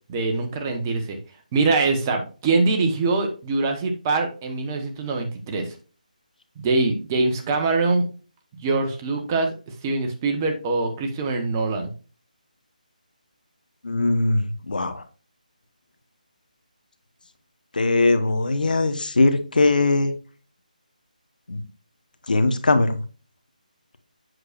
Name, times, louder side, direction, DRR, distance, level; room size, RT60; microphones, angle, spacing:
voice 1, 0.1-1.2 1.5-5.7 6.6-8.1 8.6-9.5 9.8-11.9, right 3 dB, 20° right, 4 dB, 1.1 m, -23 dB
voice 2, 13.8-15.0 17.7-20.1 21.5-21.6 22.3-23.0, left 2 dB, 75° left, 9 dB, 1.2 m, -20 dB
7.9 x 6.4 x 2.5 m, 0.35 s
figure-of-eight pair, 160°, 5 cm